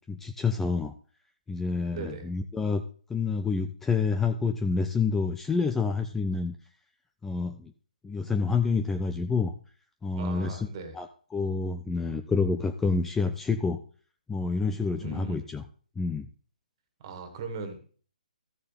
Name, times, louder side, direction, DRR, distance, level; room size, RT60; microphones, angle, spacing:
voice 1, 0.1-0.9 1.5-2.8 3.1-6.6 7.2-7.7 8.0-9.5 10.0-10.6 10.9-13.8 14.3-15.6 16.0-16.3, left 4 dB, 5° left, 6 dB, 0.4 m, -28 dB
voice 2, 1.9-2.3 10.2-11.0 15.0-15.4 17.0-17.8, right 4 dB, 35° right, 7 dB, 2.1 m, -38 dB
14.0 x 6.7 x 3.5 m, 0.41 s
figure-of-eight pair, 135°, 5 cm